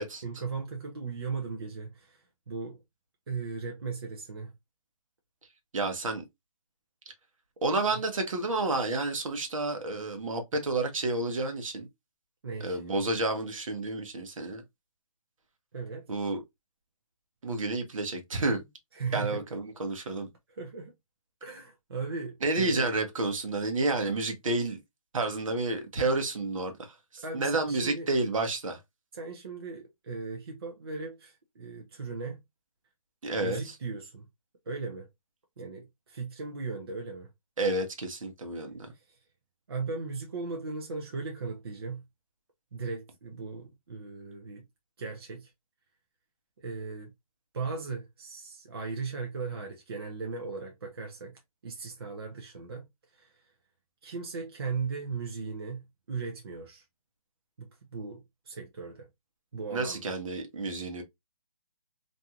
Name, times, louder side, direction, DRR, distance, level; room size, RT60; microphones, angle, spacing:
voice 1, 0.2-2.8 3.3-4.5 7.9-8.0 12.4-12.8 15.7-16.1 18.9-19.4 20.5-20.9 21.4-23.0 27.2-28.1 29.1-32.4 33.4-34.3 34.7-35.1 35.6-37.3 38.9-39.2 39.7-42.0 42.7-44.6 45.0-45.5 46.6-47.1 47.5-52.9 53.1-53.4 54.0-56.8 57.6-59.1 59.5-60.1, right 4 dB, 45° right, 0.5 m, -37 dB
voice 2, 5.7-6.2 7.6-11.9 12.6-14.6 16.1-16.4 17.4-18.7 19.1-20.3 22.4-24.8 25.1-28.8 33.2-33.8 37.6-38.9 59.7-61.0, right 2 dB, 65° right, 0.9 m, -30 dB
2.6 x 2.3 x 2.7 m
hypercardioid pair, 175°, 18 cm